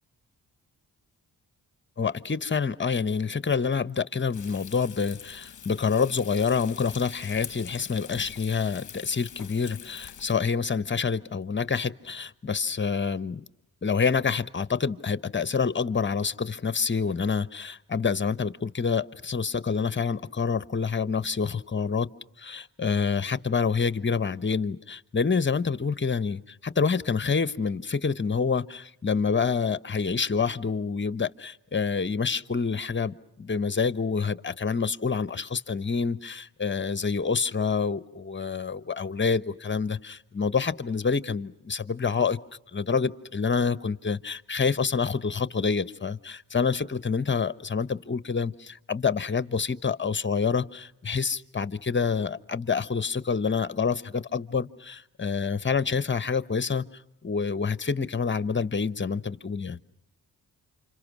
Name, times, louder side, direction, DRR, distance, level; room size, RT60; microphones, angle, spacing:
voice 1, 2.0-13.4 13.8-22.1 22.4-42.4 42.7-59.8, left 5 dB, 30° left, 15 dB, 1.1 m, -27 dB
Frying (food), 4.3-10.4, left 8 dB, 50° left, 1.0 m, -44 dB
29.0 x 26.5 x 6.3 m, 0.85 s
cardioid pair, 55°, 38 cm